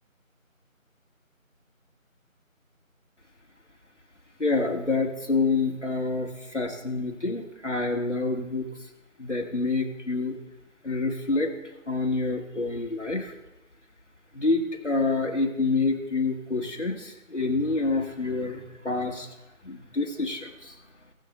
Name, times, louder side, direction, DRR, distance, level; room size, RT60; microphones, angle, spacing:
voice 1, 4.4-8.7 9.2-10.4 10.8-11.5 11.9-13.3 14.3-19.3 19.6-20.7, left 3 dB, 60° left, 1 dB, 1.9 m, -27 dB
17.0 x 6.4 x 4.1 m, 0.95 s
figure-of-eight pair, 175°, 41 cm